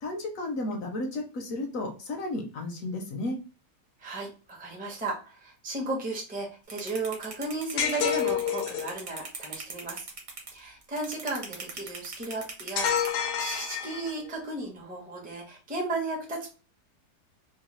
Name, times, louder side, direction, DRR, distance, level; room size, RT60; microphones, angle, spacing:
voice 1, 0.0-3.4, left 2 dB, 65° left, 2 dB, 0.9 m, -33 dB
voice 2, 4.0-10.1 10.5-16.5, right 2 dB, 10° right, -1 dB, 0.4 m, -35 dB
sound 1, 6.7-13.1, right 4 dB, 65° right, 1.3 m, -39 dB
sound 2, 7.8-9.0 12.8-14.3, left 8 dB, 90° left, 1.2 m, -29 dB
3.1 x 2.2 x 2.9 m, 0.35 s
omnidirectional pair, 1.7 m